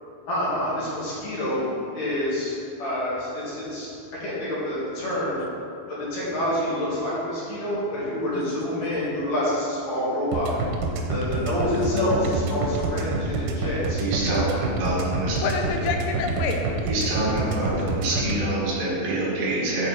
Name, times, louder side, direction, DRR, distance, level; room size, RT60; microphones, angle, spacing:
voice 1, 0.3-5.5 5.9-10.6 11.1-14.0, left 1 dB, 50° left, -9 dB, 2.7 m, -27 dB
sound 1, 10.3-18.4, right 4 dB, 90° right, 2.7 m, -27 dB
voice 2, 11.3-12.7 15.4-16.6, left 5 dB, 80° left, 3 dB, 2.3 m, -30 dB
voice 3, 14.0-15.4 16.8-19.9, right 1 dB, 50° right, -7 dB, 2.2 m, -26 dB
6.9 x 4.8 x 4.5 m, 2.6 s
omnidirectional pair, 4.8 m